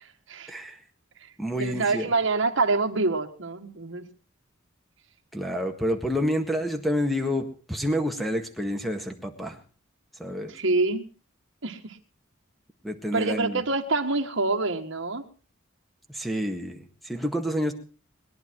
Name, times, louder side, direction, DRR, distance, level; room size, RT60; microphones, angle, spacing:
voice 1, 0.5-0.8 1.4-2.1 5.3-9.6 10.2-10.5 12.8-13.6 16.1-17.7, equal, ahead, 6 dB, 1.7 m, -28 dB
voice 2, 1.6-4.1 10.5-11.0 11.6-12.0 13.1-15.2, right 3 dB, 65° right, 4 dB, 1.7 m, -26 dB
21.0 x 11.0 x 4.6 m, 0.37 s
head